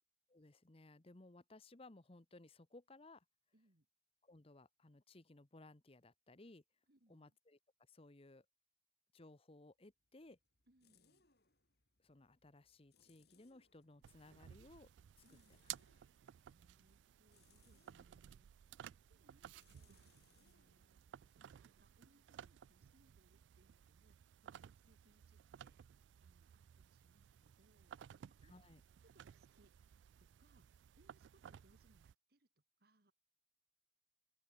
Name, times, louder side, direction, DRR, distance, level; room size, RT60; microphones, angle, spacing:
voice 1, 0.3-3.2 4.2-6.6 7.1-7.6 7.9-8.5 9.1-10.4 12.0-14.9 15.2-15.3 28.4-28.8, left 2 dB, 30° left, 1.0 m, -61 dB
voice 2, 3.5-3.9 6.9-7.4 10.7-11.3 15.2-15.7 16.1-25.8 26.2-28.6 29.1-29.7 30.2-33.1, right 1 dB, 60° right, 2.4 m, -75 dB
sound 1, 9.9-22.5, left 5 dB, 60° left, 6.4 m, -77 dB
sound 2, 14.0-32.1, right 10 dB, 80° right, 0.3 m, -58 dB
open air
head